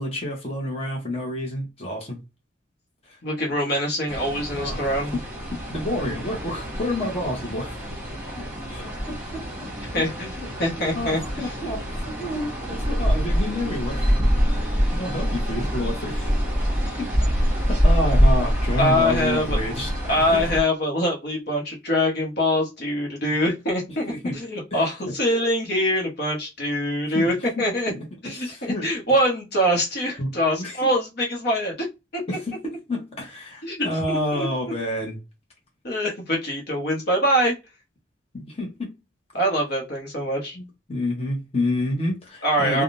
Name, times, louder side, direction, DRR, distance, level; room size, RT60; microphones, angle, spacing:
voice 1, 0.0-2.2 3.1-3.2 4.5-4.8 5.1-5.2 5.5-7.8 8.4-9.5 10.4-14.1 14.9-16.3 17.0-17.1 17.7-19.9 20.3-20.5 24.1-24.4 24.7-25.1 27.1-27.3 27.6-28.9 30.2-30.3 30.6-30.9 32.3-35.2 38.3-38.9 40.5-42.8, left 1 dB, 35° left, 1.0 m, -29 dB
voice 2, 3.2-5.1 9.9-10.3 10.6-11.5 18.7-19.6 20.1-27.9 28.2-31.9 32.1-32.2 33.6-34.7 35.8-37.5 39.3-40.6 42.4-42.8, equal, 60° left, 1.0 m, -24 dB
sound 1, 4.1-20.6, equal, 10° right, 1.2 m, -25 dB
3.5 x 2.3 x 2.5 m
head